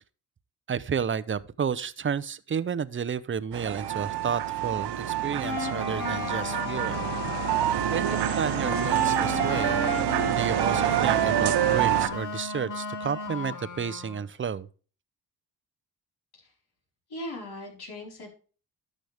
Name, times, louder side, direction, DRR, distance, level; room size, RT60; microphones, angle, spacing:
voice 1, 0.7-7.0 7.9-9.8 10.3-14.7, right 7 dB, 30° right, 0.6 m, -31 dB
sound 1, 3.5-12.1, right 12 dB, 85° right, 0.9 m, -26 dB
sound 2, 5.4-14.2, left 5 dB, 50° left, 1.8 m, -34 dB
voice 2, 17.1-18.3, left 1 dB, 70° left, 4.5 m, -39 dB
11.5 x 6.3 x 3.4 m
cardioid pair, 70°, 39 cm